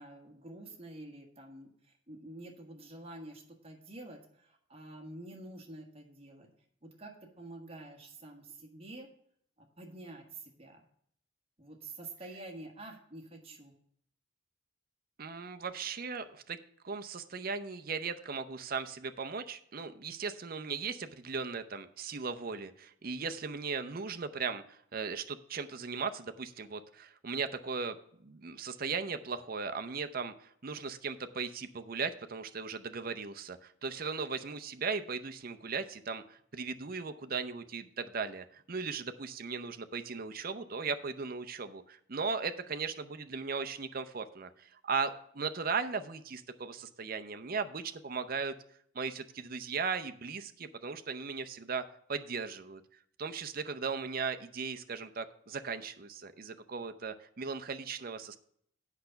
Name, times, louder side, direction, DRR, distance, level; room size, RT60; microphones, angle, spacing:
voice 1, 0.0-1.7 2.1-4.2 4.7-6.5 7.0-7.1 7.4-9.1 9.8-10.2 10.6-10.8 11.6-13.7, right 2 dB, 30° right, 2 dB, 1.4 m, -47 dB
voice 2, 15.2-16.6 16.8-28.0 28.2-48.5 48.9-51.8 52.1-52.8 53.2-58.4, right 5 dB, 45° right, 8 dB, 0.6 m, -37 dB
8.4 x 5.7 x 6.6 m, 0.68 s
head